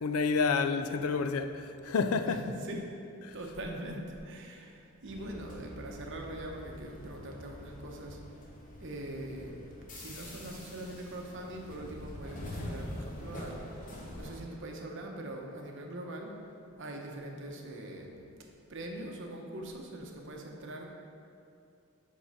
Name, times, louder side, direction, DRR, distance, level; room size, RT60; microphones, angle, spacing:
voice 1, 0.0-2.4 3.3-3.4, left 4 dB, 80° left, 0.4 m, -29 dB
voice 2, 2.3-2.8 3.3-8.2 8.8-9.6 9.9-16.3 16.8-18.3 18.7-20.9, right 1 dB, 55° right, 0.9 m, -42 dB
sound 1, 5.1-14.5, left 1 dB, 40° left, 0.9 m, -45 dB
8.0 x 3.8 x 5.5 m
head